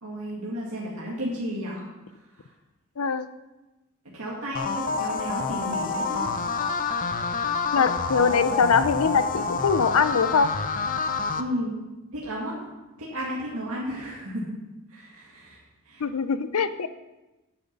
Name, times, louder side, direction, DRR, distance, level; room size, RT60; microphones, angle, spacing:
voice 1, 0.0-1.9 4.1-6.3 11.4-11.8 12.1-12.5 13.0-14.6 14.9-16.0, equal, 75° right, -5 dB, 2.1 m, -33 dB
voice 2, 3.0-3.3 7.7-10.5 16.0-16.9, left 5 dB, 80° left, 13 dB, 0.6 m, -22 dB
sound 1, 4.5-11.4, left 4 dB, 40° left, 0.6 m, -28 dB
9.3 x 8.7 x 5.3 m, 1.0 s
head